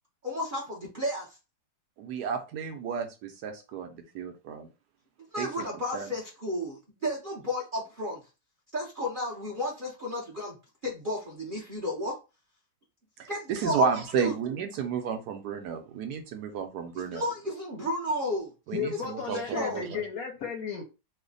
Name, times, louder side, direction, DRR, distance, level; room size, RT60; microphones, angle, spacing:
voice 1, 0.2-1.4 5.3-8.2 8.7-10.6 10.8-12.2 13.3-13.9 14.1-14.4 17.0-18.5 19.1-19.8, left 1 dB, 45° right, -4 dB, 0.6 m, -32 dB
voice 2, 2.0-4.7 5.4-5.5 5.9-6.1 13.2-17.2 18.7-20.0, right 7 dB, 70° right, 5 dB, 1.1 m, -32 dB
voice 3, 18.7-20.8, left 7 dB, 65° left, 2 dB, 0.9 m, -34 dB
3.2 x 2.1 x 3.7 m, 0.29 s
omnidirectional pair, 1.9 m